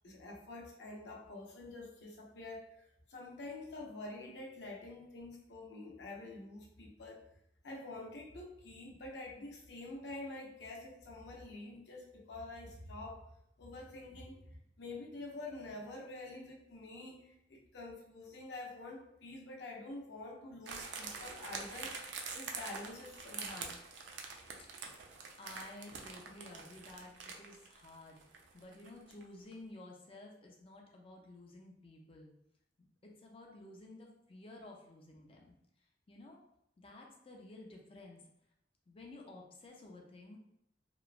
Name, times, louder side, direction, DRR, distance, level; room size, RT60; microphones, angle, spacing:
voice 1, 0.0-7.2 7.6-13.2 13.6-22.0 22.3-23.8, left 2 dB, 70° left, -1 dB, 0.6 m, -47 dB
sound 1, 20.7-29.3 29.5-29.6, right 5 dB, 75° right, 0.4 m, -45 dB
voice 2, 25.4-28.2 28.5-32.3 33.0-35.5 36.1-36.4 36.8-38.3 38.9-40.4, left 2 dB, 30° left, 0 dB, 0.5 m, -53 dB
3.0 x 2.1 x 2.4 m, 0.79 s
head